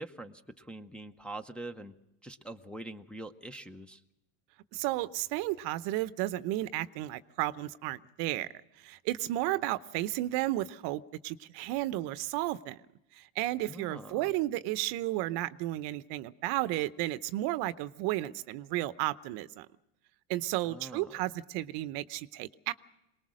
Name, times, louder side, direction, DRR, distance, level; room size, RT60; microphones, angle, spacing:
voice 1, 0.0-1.9 2.2-4.0 13.7-14.3 20.7-21.2, right 1 dB, ahead, 3 dB, 0.8 m, -44 dB
voice 2, 4.7-8.5 8.8-12.8 13.1-19.7 20.3-22.7, right 16 dB, 55° right, 15 dB, 0.8 m, -33 dB
23.0 x 19.5 x 6.4 m, 0.91 s
supercardioid pair, 105°, 48 cm